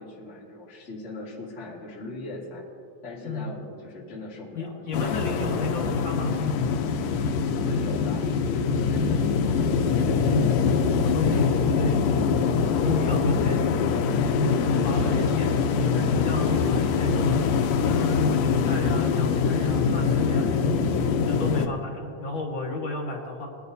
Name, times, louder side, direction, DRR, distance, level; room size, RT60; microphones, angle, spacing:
voice 1, 0.0-2.6 3.0-6.0 7.5-11.6 14.9-15.3, left 2 dB, 25° left, -6 dB, 1.9 m, -40 dB
voice 2, 3.2-3.6 4.5-6.4 11.0-12.5 12.8-13.9 14.6-17.4 17.8-23.5, left 2 dB, 50° left, -2 dB, 1.5 m, -32 dB
sound 1, 4.9-21.7, left 5 dB, 85° left, 1.5 m, -23 dB
22.0 x 11.0 x 2.7 m, 2.3 s
omnidirectional pair, 4.0 m